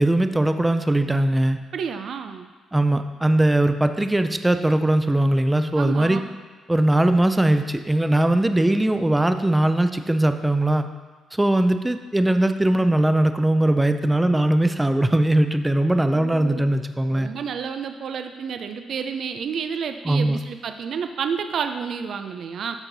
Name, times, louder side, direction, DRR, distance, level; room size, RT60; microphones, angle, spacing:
voice 1, 0.0-1.6 2.7-6.2 6.7-10.9 11.3-17.3 20.0-20.4, right 1 dB, 10° right, 8 dB, 0.5 m, -20 dB
voice 2, 1.7-2.5 5.8-6.3 16.1-16.6 17.0-22.8, right 6 dB, 65° right, 8 dB, 0.5 m, -30 dB
12.5 x 4.5 x 4.0 m, 1.4 s
cardioid pair, 90°, 0 cm